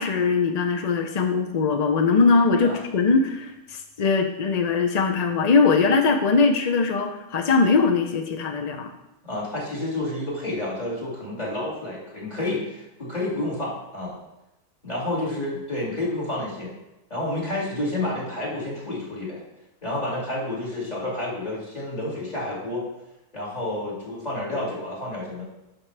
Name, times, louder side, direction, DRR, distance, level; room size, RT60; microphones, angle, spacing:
voice 1, 0.0-8.9, left 4 dB, 65° left, 5 dB, 0.4 m, -21 dB
voice 2, 9.2-14.2 14.8-16.7 17.1-19.4 19.8-22.8 23.3-25.4, left 1 dB, 30° left, -6 dB, 2.4 m, -30 dB
10.5 x 6.1 x 3.3 m, 0.93 s
omnidirectional pair, 1.5 m